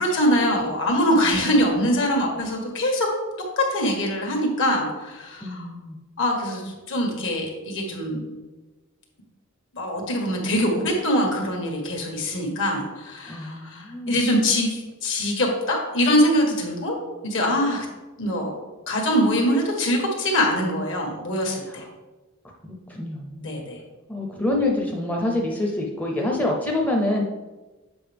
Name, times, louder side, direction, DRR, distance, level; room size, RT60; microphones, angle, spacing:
voice 1, 0.0-3.1 3.6-5.7 6.2-8.2 9.7-17.0 17.2-17.9 18.2-18.5 18.9-21.8 23.4-23.8, equal, 60° left, 1 dB, 1.5 m, -23 dB
voice 2, 5.4-6.0 13.3-14.2 21.7-21.8 22.6-23.6 24.1-27.2, left 2 dB, 5° left, -1 dB, 0.6 m, -26 dB
7.8 x 5.2 x 3.4 m, 1.2 s
head